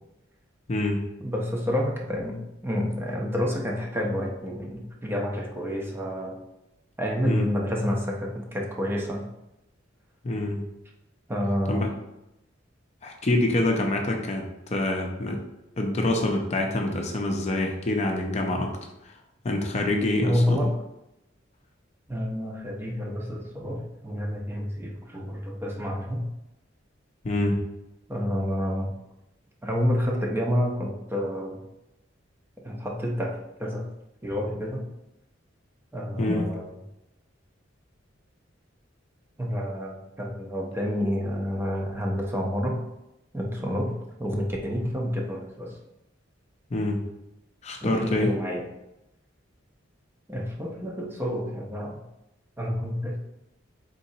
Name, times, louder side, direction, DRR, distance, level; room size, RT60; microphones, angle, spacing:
voice 1, 0.7-1.0 7.3-7.5 10.2-10.6 11.7-11.9 13.0-15.4 15.8-18.7 19.0-19.2 19.4-20.6 27.2-27.6 36.2-36.4 46.7-47.0 47.6-48.3, left 1 dB, 35° left, 2 dB, 0.5 m, -26 dB
voice 2, 1.2-6.4 7.0-9.3 11.3-11.9 20.2-20.7 22.1-26.3 28.1-28.9 29.6-31.6 32.6-33.9 34.2-34.9 35.9-36.7 39.4-42.8 43.3-45.8 47.8-48.7 50.3-52.0 52.6-53.2, equal, 10° right, -1 dB, 0.6 m, -29 dB
4.0 x 3.8 x 2.7 m, 0.89 s
head